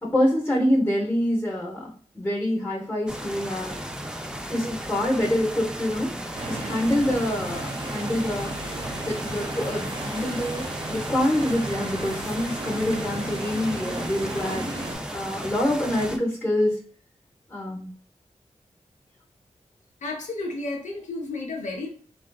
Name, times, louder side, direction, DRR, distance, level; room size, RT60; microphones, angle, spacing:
voice 1, 0.0-3.7 4.5-6.1 6.5-8.5 9.1-14.7 15.1-16.8 17.5-17.9, left 1 dB, 15° left, -3 dB, 0.9 m, -26 dB
sound 1, 3.1-16.2, equal, 5° right, 0.4 m, -35 dB
sound 2, 6.3-15.0, right 1 dB, 40° right, 0.8 m, -35 dB
voice 2, 20.0-21.9, left 2 dB, 85° left, 2 dB, 0.8 m, -32 dB
3.5 x 2.5 x 2.3 m, 0.43 s
wide cardioid pair, 70°, 12 cm